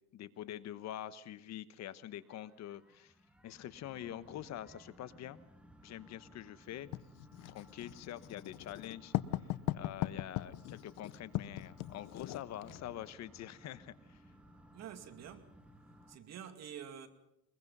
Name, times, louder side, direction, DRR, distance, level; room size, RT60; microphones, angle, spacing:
voice 1, 0.1-3.1 3.4-5.4 5.8-6.9 7.5-9.1 9.7-14.2, left 12 dB, 55° left, 1.1 m, -45 dB
sound 1, 2.1-16.2, equal, 5° right, 2.1 m, -60 dB
Writing, 6.9-12.9, left 15 dB, 70° left, 0.9 m, -39 dB
voice 2, 14.7-15.6 16.1-17.1, right 9 dB, 50° right, 2.3 m, -48 dB
22.5 x 22.0 x 5.5 m
cardioid pair, 120°, 33 cm